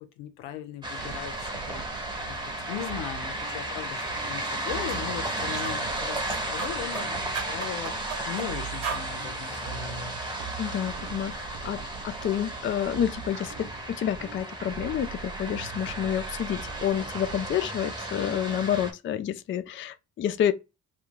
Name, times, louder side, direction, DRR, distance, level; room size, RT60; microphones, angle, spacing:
voice 1, 0.2-6.2 6.5-7.9 8.3-10.2, left 11 dB, 85° left, 0.6 m, -38 dB
sound 1, 0.8-18.9, right 1 dB, 10° right, 0.9 m, -34 dB
sound 2, 1.0-17.6, right 8 dB, 60° right, 0.6 m, -43 dB
sound 3, 4.3-4.5 4.9-5.0 5.5-5.8 6.1-7.1 7.3-8.5 8.8-9.1, right 6 dB, 80° right, 1.0 m, -35 dB
voice 2, 10.6-20.5, left 10 dB, 30° left, 0.3 m, -29 dB
2.2 x 2.2 x 3.7 m
hypercardioid pair, 50°, 42 cm